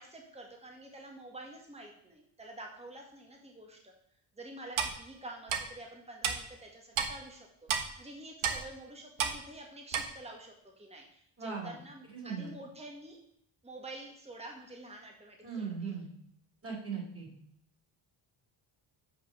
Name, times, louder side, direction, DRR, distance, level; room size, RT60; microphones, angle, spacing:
voice 1, 0.0-3.9 4.4-13.2 13.6-15.9, right 1 dB, 10° right, 1 dB, 1.9 m, -48 dB
Clock, 4.8-4.9 5.5-5.6 6.2-6.4 7.0-7.1 7.7-7.8 8.4-8.6 9.2-9.4 9.9-10.0, right 7 dB, 85° right, 1.4 m, -30 dB
voice 2, 11.4-11.8 12.1-12.5 15.4-16.1 16.6-17.3, right 5 dB, 30° right, -4 dB, 4.8 m, -38 dB
8.1 x 5.6 x 6.7 m, 0.65 s
cardioid pair, 120°, 49 cm